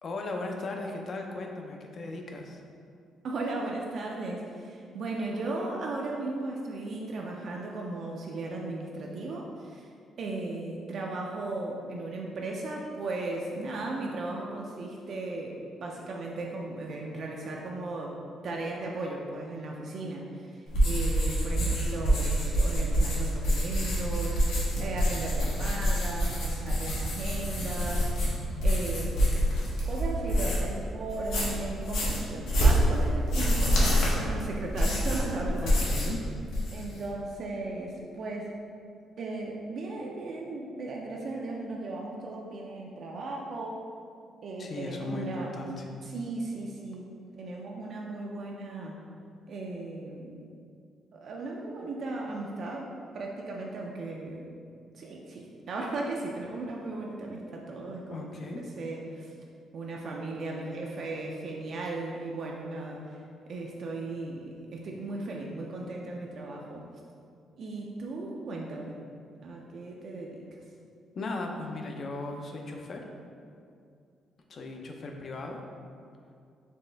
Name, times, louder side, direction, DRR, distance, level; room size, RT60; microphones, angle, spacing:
voice 1, 0.0-2.6 35.6-36.2 44.6-45.8 58.1-58.6 71.1-73.0 74.5-75.6, left 2 dB, 35° left, 2 dB, 0.4 m, -37 dB
voice 2, 3.2-9.9 10.2-18.2 18.4-28.1 28.6-29.3 29.8-35.8 36.7-38.5 39.2-43.8 44.4-45.5 46.0-47.1 47.3-49.0 49.5-50.3 51.1-52.9 53.1-54.5 54.9-58.3 58.6-59.3 59.7-66.8 67.6-68.9 69.4-70.4, right 2 dB, 45° right, -1 dB, 0.3 m, -36 dB
sound 1, 20.7-30.7 31.1-36.2 36.4-37.0, equal, 80° left, 1.0 m, -26 dB
4.2 x 3.1 x 3.3 m, 2.4 s
cardioid pair, 170°, 0 cm